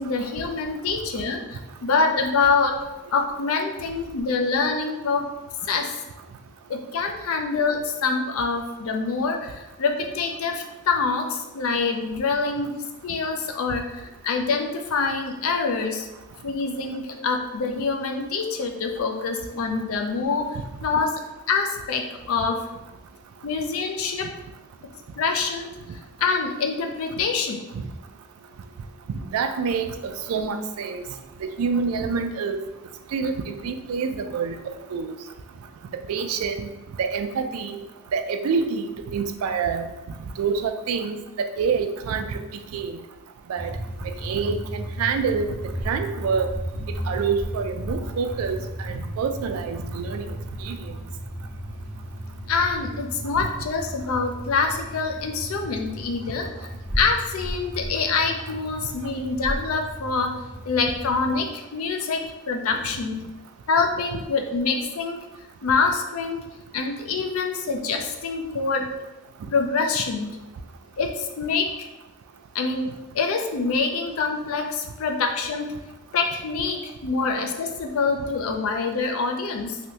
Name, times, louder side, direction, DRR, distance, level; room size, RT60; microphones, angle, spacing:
voice 1, 0.0-2.7 3.1-5.2 5.6-5.9 6.7-12.7 13.0-16.1 16.4-20.5 20.8-21.1 21.5-22.6 23.4-24.3 25.2-25.7 26.2-27.6 52.5-56.7 56.9-60.3 60.6-62.2 62.5-63.2 63.7-65.2 65.6-66.4 66.7-68.9 69.5-70.3 71.0-71.7 72.5-75.7 76.1-79.8, left 4 dB, 80° left, 3 dB, 0.4 m, -25 dB
voice 2, 29.3-31.0 31.4-32.6 33.1-33.3 33.6-34.6 34.9-35.2 36.1-36.7 37.0-37.8 38.1-38.9 39.1-39.8 40.4-41.2 41.6-42.4 42.7-43.0 43.5-43.7 44.0-45.5 45.9-46.5 47.1-50.2 50.6-51.0, right 5 dB, 85° right, 7 dB, 0.3 m, -26 dB
sound 1, 43.6-61.4, equal, 10° right, 0.5 m, -34 dB
3.3 x 2.6 x 2.8 m, 1.0 s
head